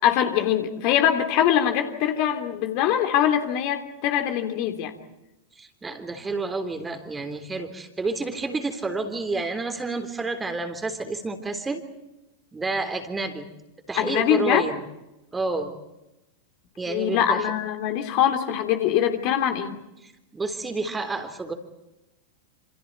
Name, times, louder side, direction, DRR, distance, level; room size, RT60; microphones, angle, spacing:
voice 1, 0.0-4.9 14.0-14.6 16.9-19.7, left 10 dB, 45° left, 6 dB, 3.1 m, -23 dB
voice 2, 5.6-11.8 12.5-13.5 13.9-14.8 15.3-15.7 16.8-17.4 20.3-21.5, right 3 dB, 10° right, 8 dB, 3.5 m, -29 dB
28.5 x 28.0 x 4.7 m, 0.94 s
figure-of-eight pair, 90°, 0 cm